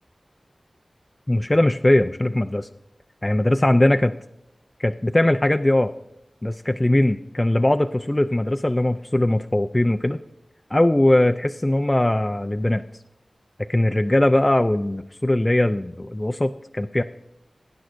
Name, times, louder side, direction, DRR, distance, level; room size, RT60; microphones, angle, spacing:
voice 1, 1.3-2.7 3.2-4.1 4.8-5.9 6.4-10.2 10.7-12.8 13.7-17.0, left 1 dB, 20° left, 6 dB, 0.3 m, -20 dB
18.5 x 9.5 x 2.5 m, 0.83 s
wide cardioid pair, 75°, 0 cm